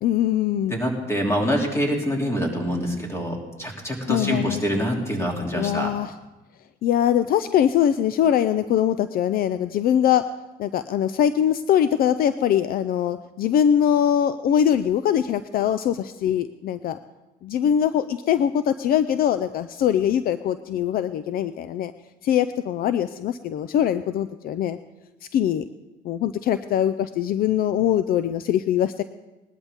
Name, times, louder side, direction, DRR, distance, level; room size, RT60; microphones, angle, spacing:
voice 1, 0.0-0.8 4.1-4.6 5.5-6.1 6.8-10.2 10.6-17.0 17.4-21.9 22.2-24.8 25.3-25.6 26.0-29.0, left 10 dB, 60° left, 12 dB, 0.5 m, -22 dB
voice 2, 0.7-5.9, equal, 15° left, 0 dB, 3.0 m, -25 dB
19.5 x 12.5 x 3.6 m, 1.1 s
cardioid pair, 110°, 17 cm